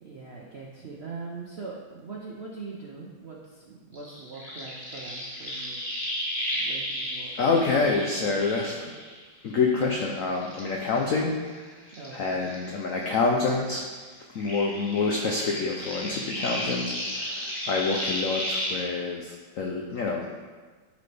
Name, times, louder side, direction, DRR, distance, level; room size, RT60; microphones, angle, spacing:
voice 1, 0.0-5.9 6.5-7.6 12.0-12.3, right 4 dB, 70° right, -3 dB, 0.6 m, -42 dB
sound 1, 3.9-9.5 9.8-13.2 13.4-18.8, equal, 15° left, 1.5 m, -34 dB
voice 2, 7.4-8.9 9.4-11.3 12.1-13.9 14.3-20.3, left 4 dB, 85° left, 1 dB, 0.7 m, -27 dB
11.0 x 4.1 x 3.4 m, 1.5 s
omnidirectional pair, 2.2 m